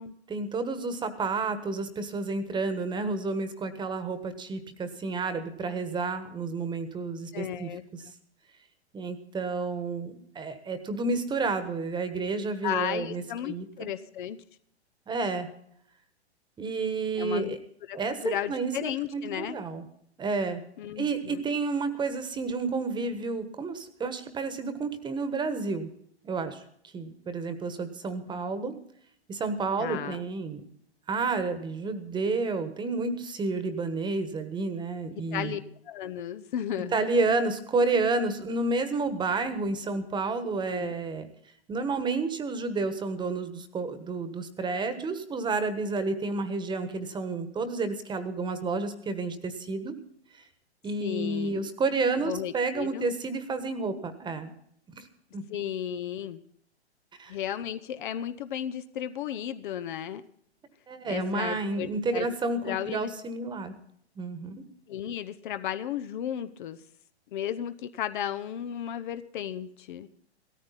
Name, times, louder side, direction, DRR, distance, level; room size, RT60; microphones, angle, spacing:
voice 1, 0.3-8.0 8.9-13.9 15.1-15.5 16.6-17.6 17.9-19.9 20.2-20.6 21.0-25.9 26.2-26.6 26.9-28.7 29.3-30.6 31.1-35.6 36.9-41.3 41.7-49.9 50.8-54.5 54.9-55.1 55.3-55.6 57.2-57.3 60.9-63.7 64.2-64.6, right 3 dB, 15° right, 11 dB, 1.4 m, -30 dB
voice 2, 7.3-7.8 12.6-14.4 17.2-17.6 17.9-18.0 18.2-19.6 20.8-21.4 29.8-30.2 35.1-35.6 35.9-37.0 40.7-40.9 51.0-51.6 52.2-53.1 55.5-56.4 57.3-60.2 61.1-62.3 62.6-63.1 64.9-66.8 67.3-70.1, left 10 dB, 45° left, 11 dB, 0.9 m, -34 dB
17.5 x 14.0 x 4.1 m, 0.66 s
figure-of-eight pair, 115°, 34 cm